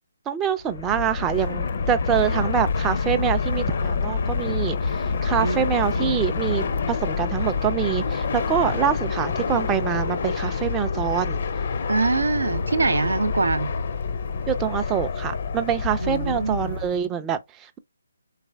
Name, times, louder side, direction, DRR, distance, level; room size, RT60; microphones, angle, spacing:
voice 1, 0.3-11.4 14.5-17.8, right 9 dB, 15° right, 0.3 m, -25 dB
Fixed-wing aircraft airplane, 0.6-17.0, left 5 dB, 50° left, 0.5 m, -27 dB
voice 2, 5.4-6.2 11.9-13.7 16.0-16.7, right 3 dB, 80° right, 0.5 m, -24 dB
4.1 x 3.3 x 3.3 m
hypercardioid pair, 160°, 0 cm